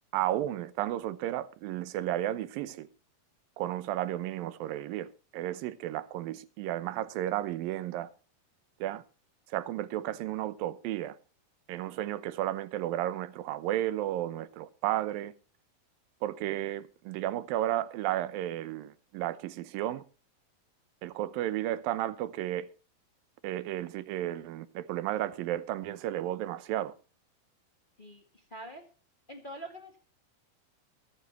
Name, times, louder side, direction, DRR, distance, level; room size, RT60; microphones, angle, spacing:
voice 1, 0.1-2.9 3.6-8.1 8.8-9.0 9.5-11.2 11.7-15.3 16.2-20.0 21.0-22.7 23.4-26.9, right 13 dB, 85° right, 2.6 m, -33 dB
voice 2, 28.0-28.8 29.3-30.0, right 1 dB, 20° left, 1.6 m, -45 dB
22.0 x 9.4 x 3.0 m
omnidirectional pair, 4.0 m